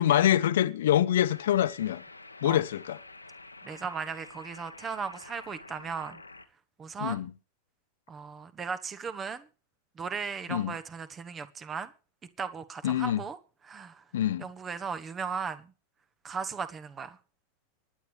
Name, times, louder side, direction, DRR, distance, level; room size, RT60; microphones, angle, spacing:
voice 1, 0.0-2.0 2.4-3.0 7.0-7.3 10.5-10.7 12.8-13.2 14.1-14.4, left 11 dB, 60° left, 0.8 m, -25 dB
sound 1, 1.3-6.5, left 3 dB, 85° left, 1.3 m, -49 dB
voice 2, 3.6-6.2 6.8-7.3 8.1-9.5 9.9-11.9 12.4-13.4 13.7-14.0 14.4-15.7 16.2-17.2, right 6 dB, 20° right, 1.3 m, -37 dB
25.0 x 9.6 x 3.3 m
figure-of-eight pair, 90°, 0 cm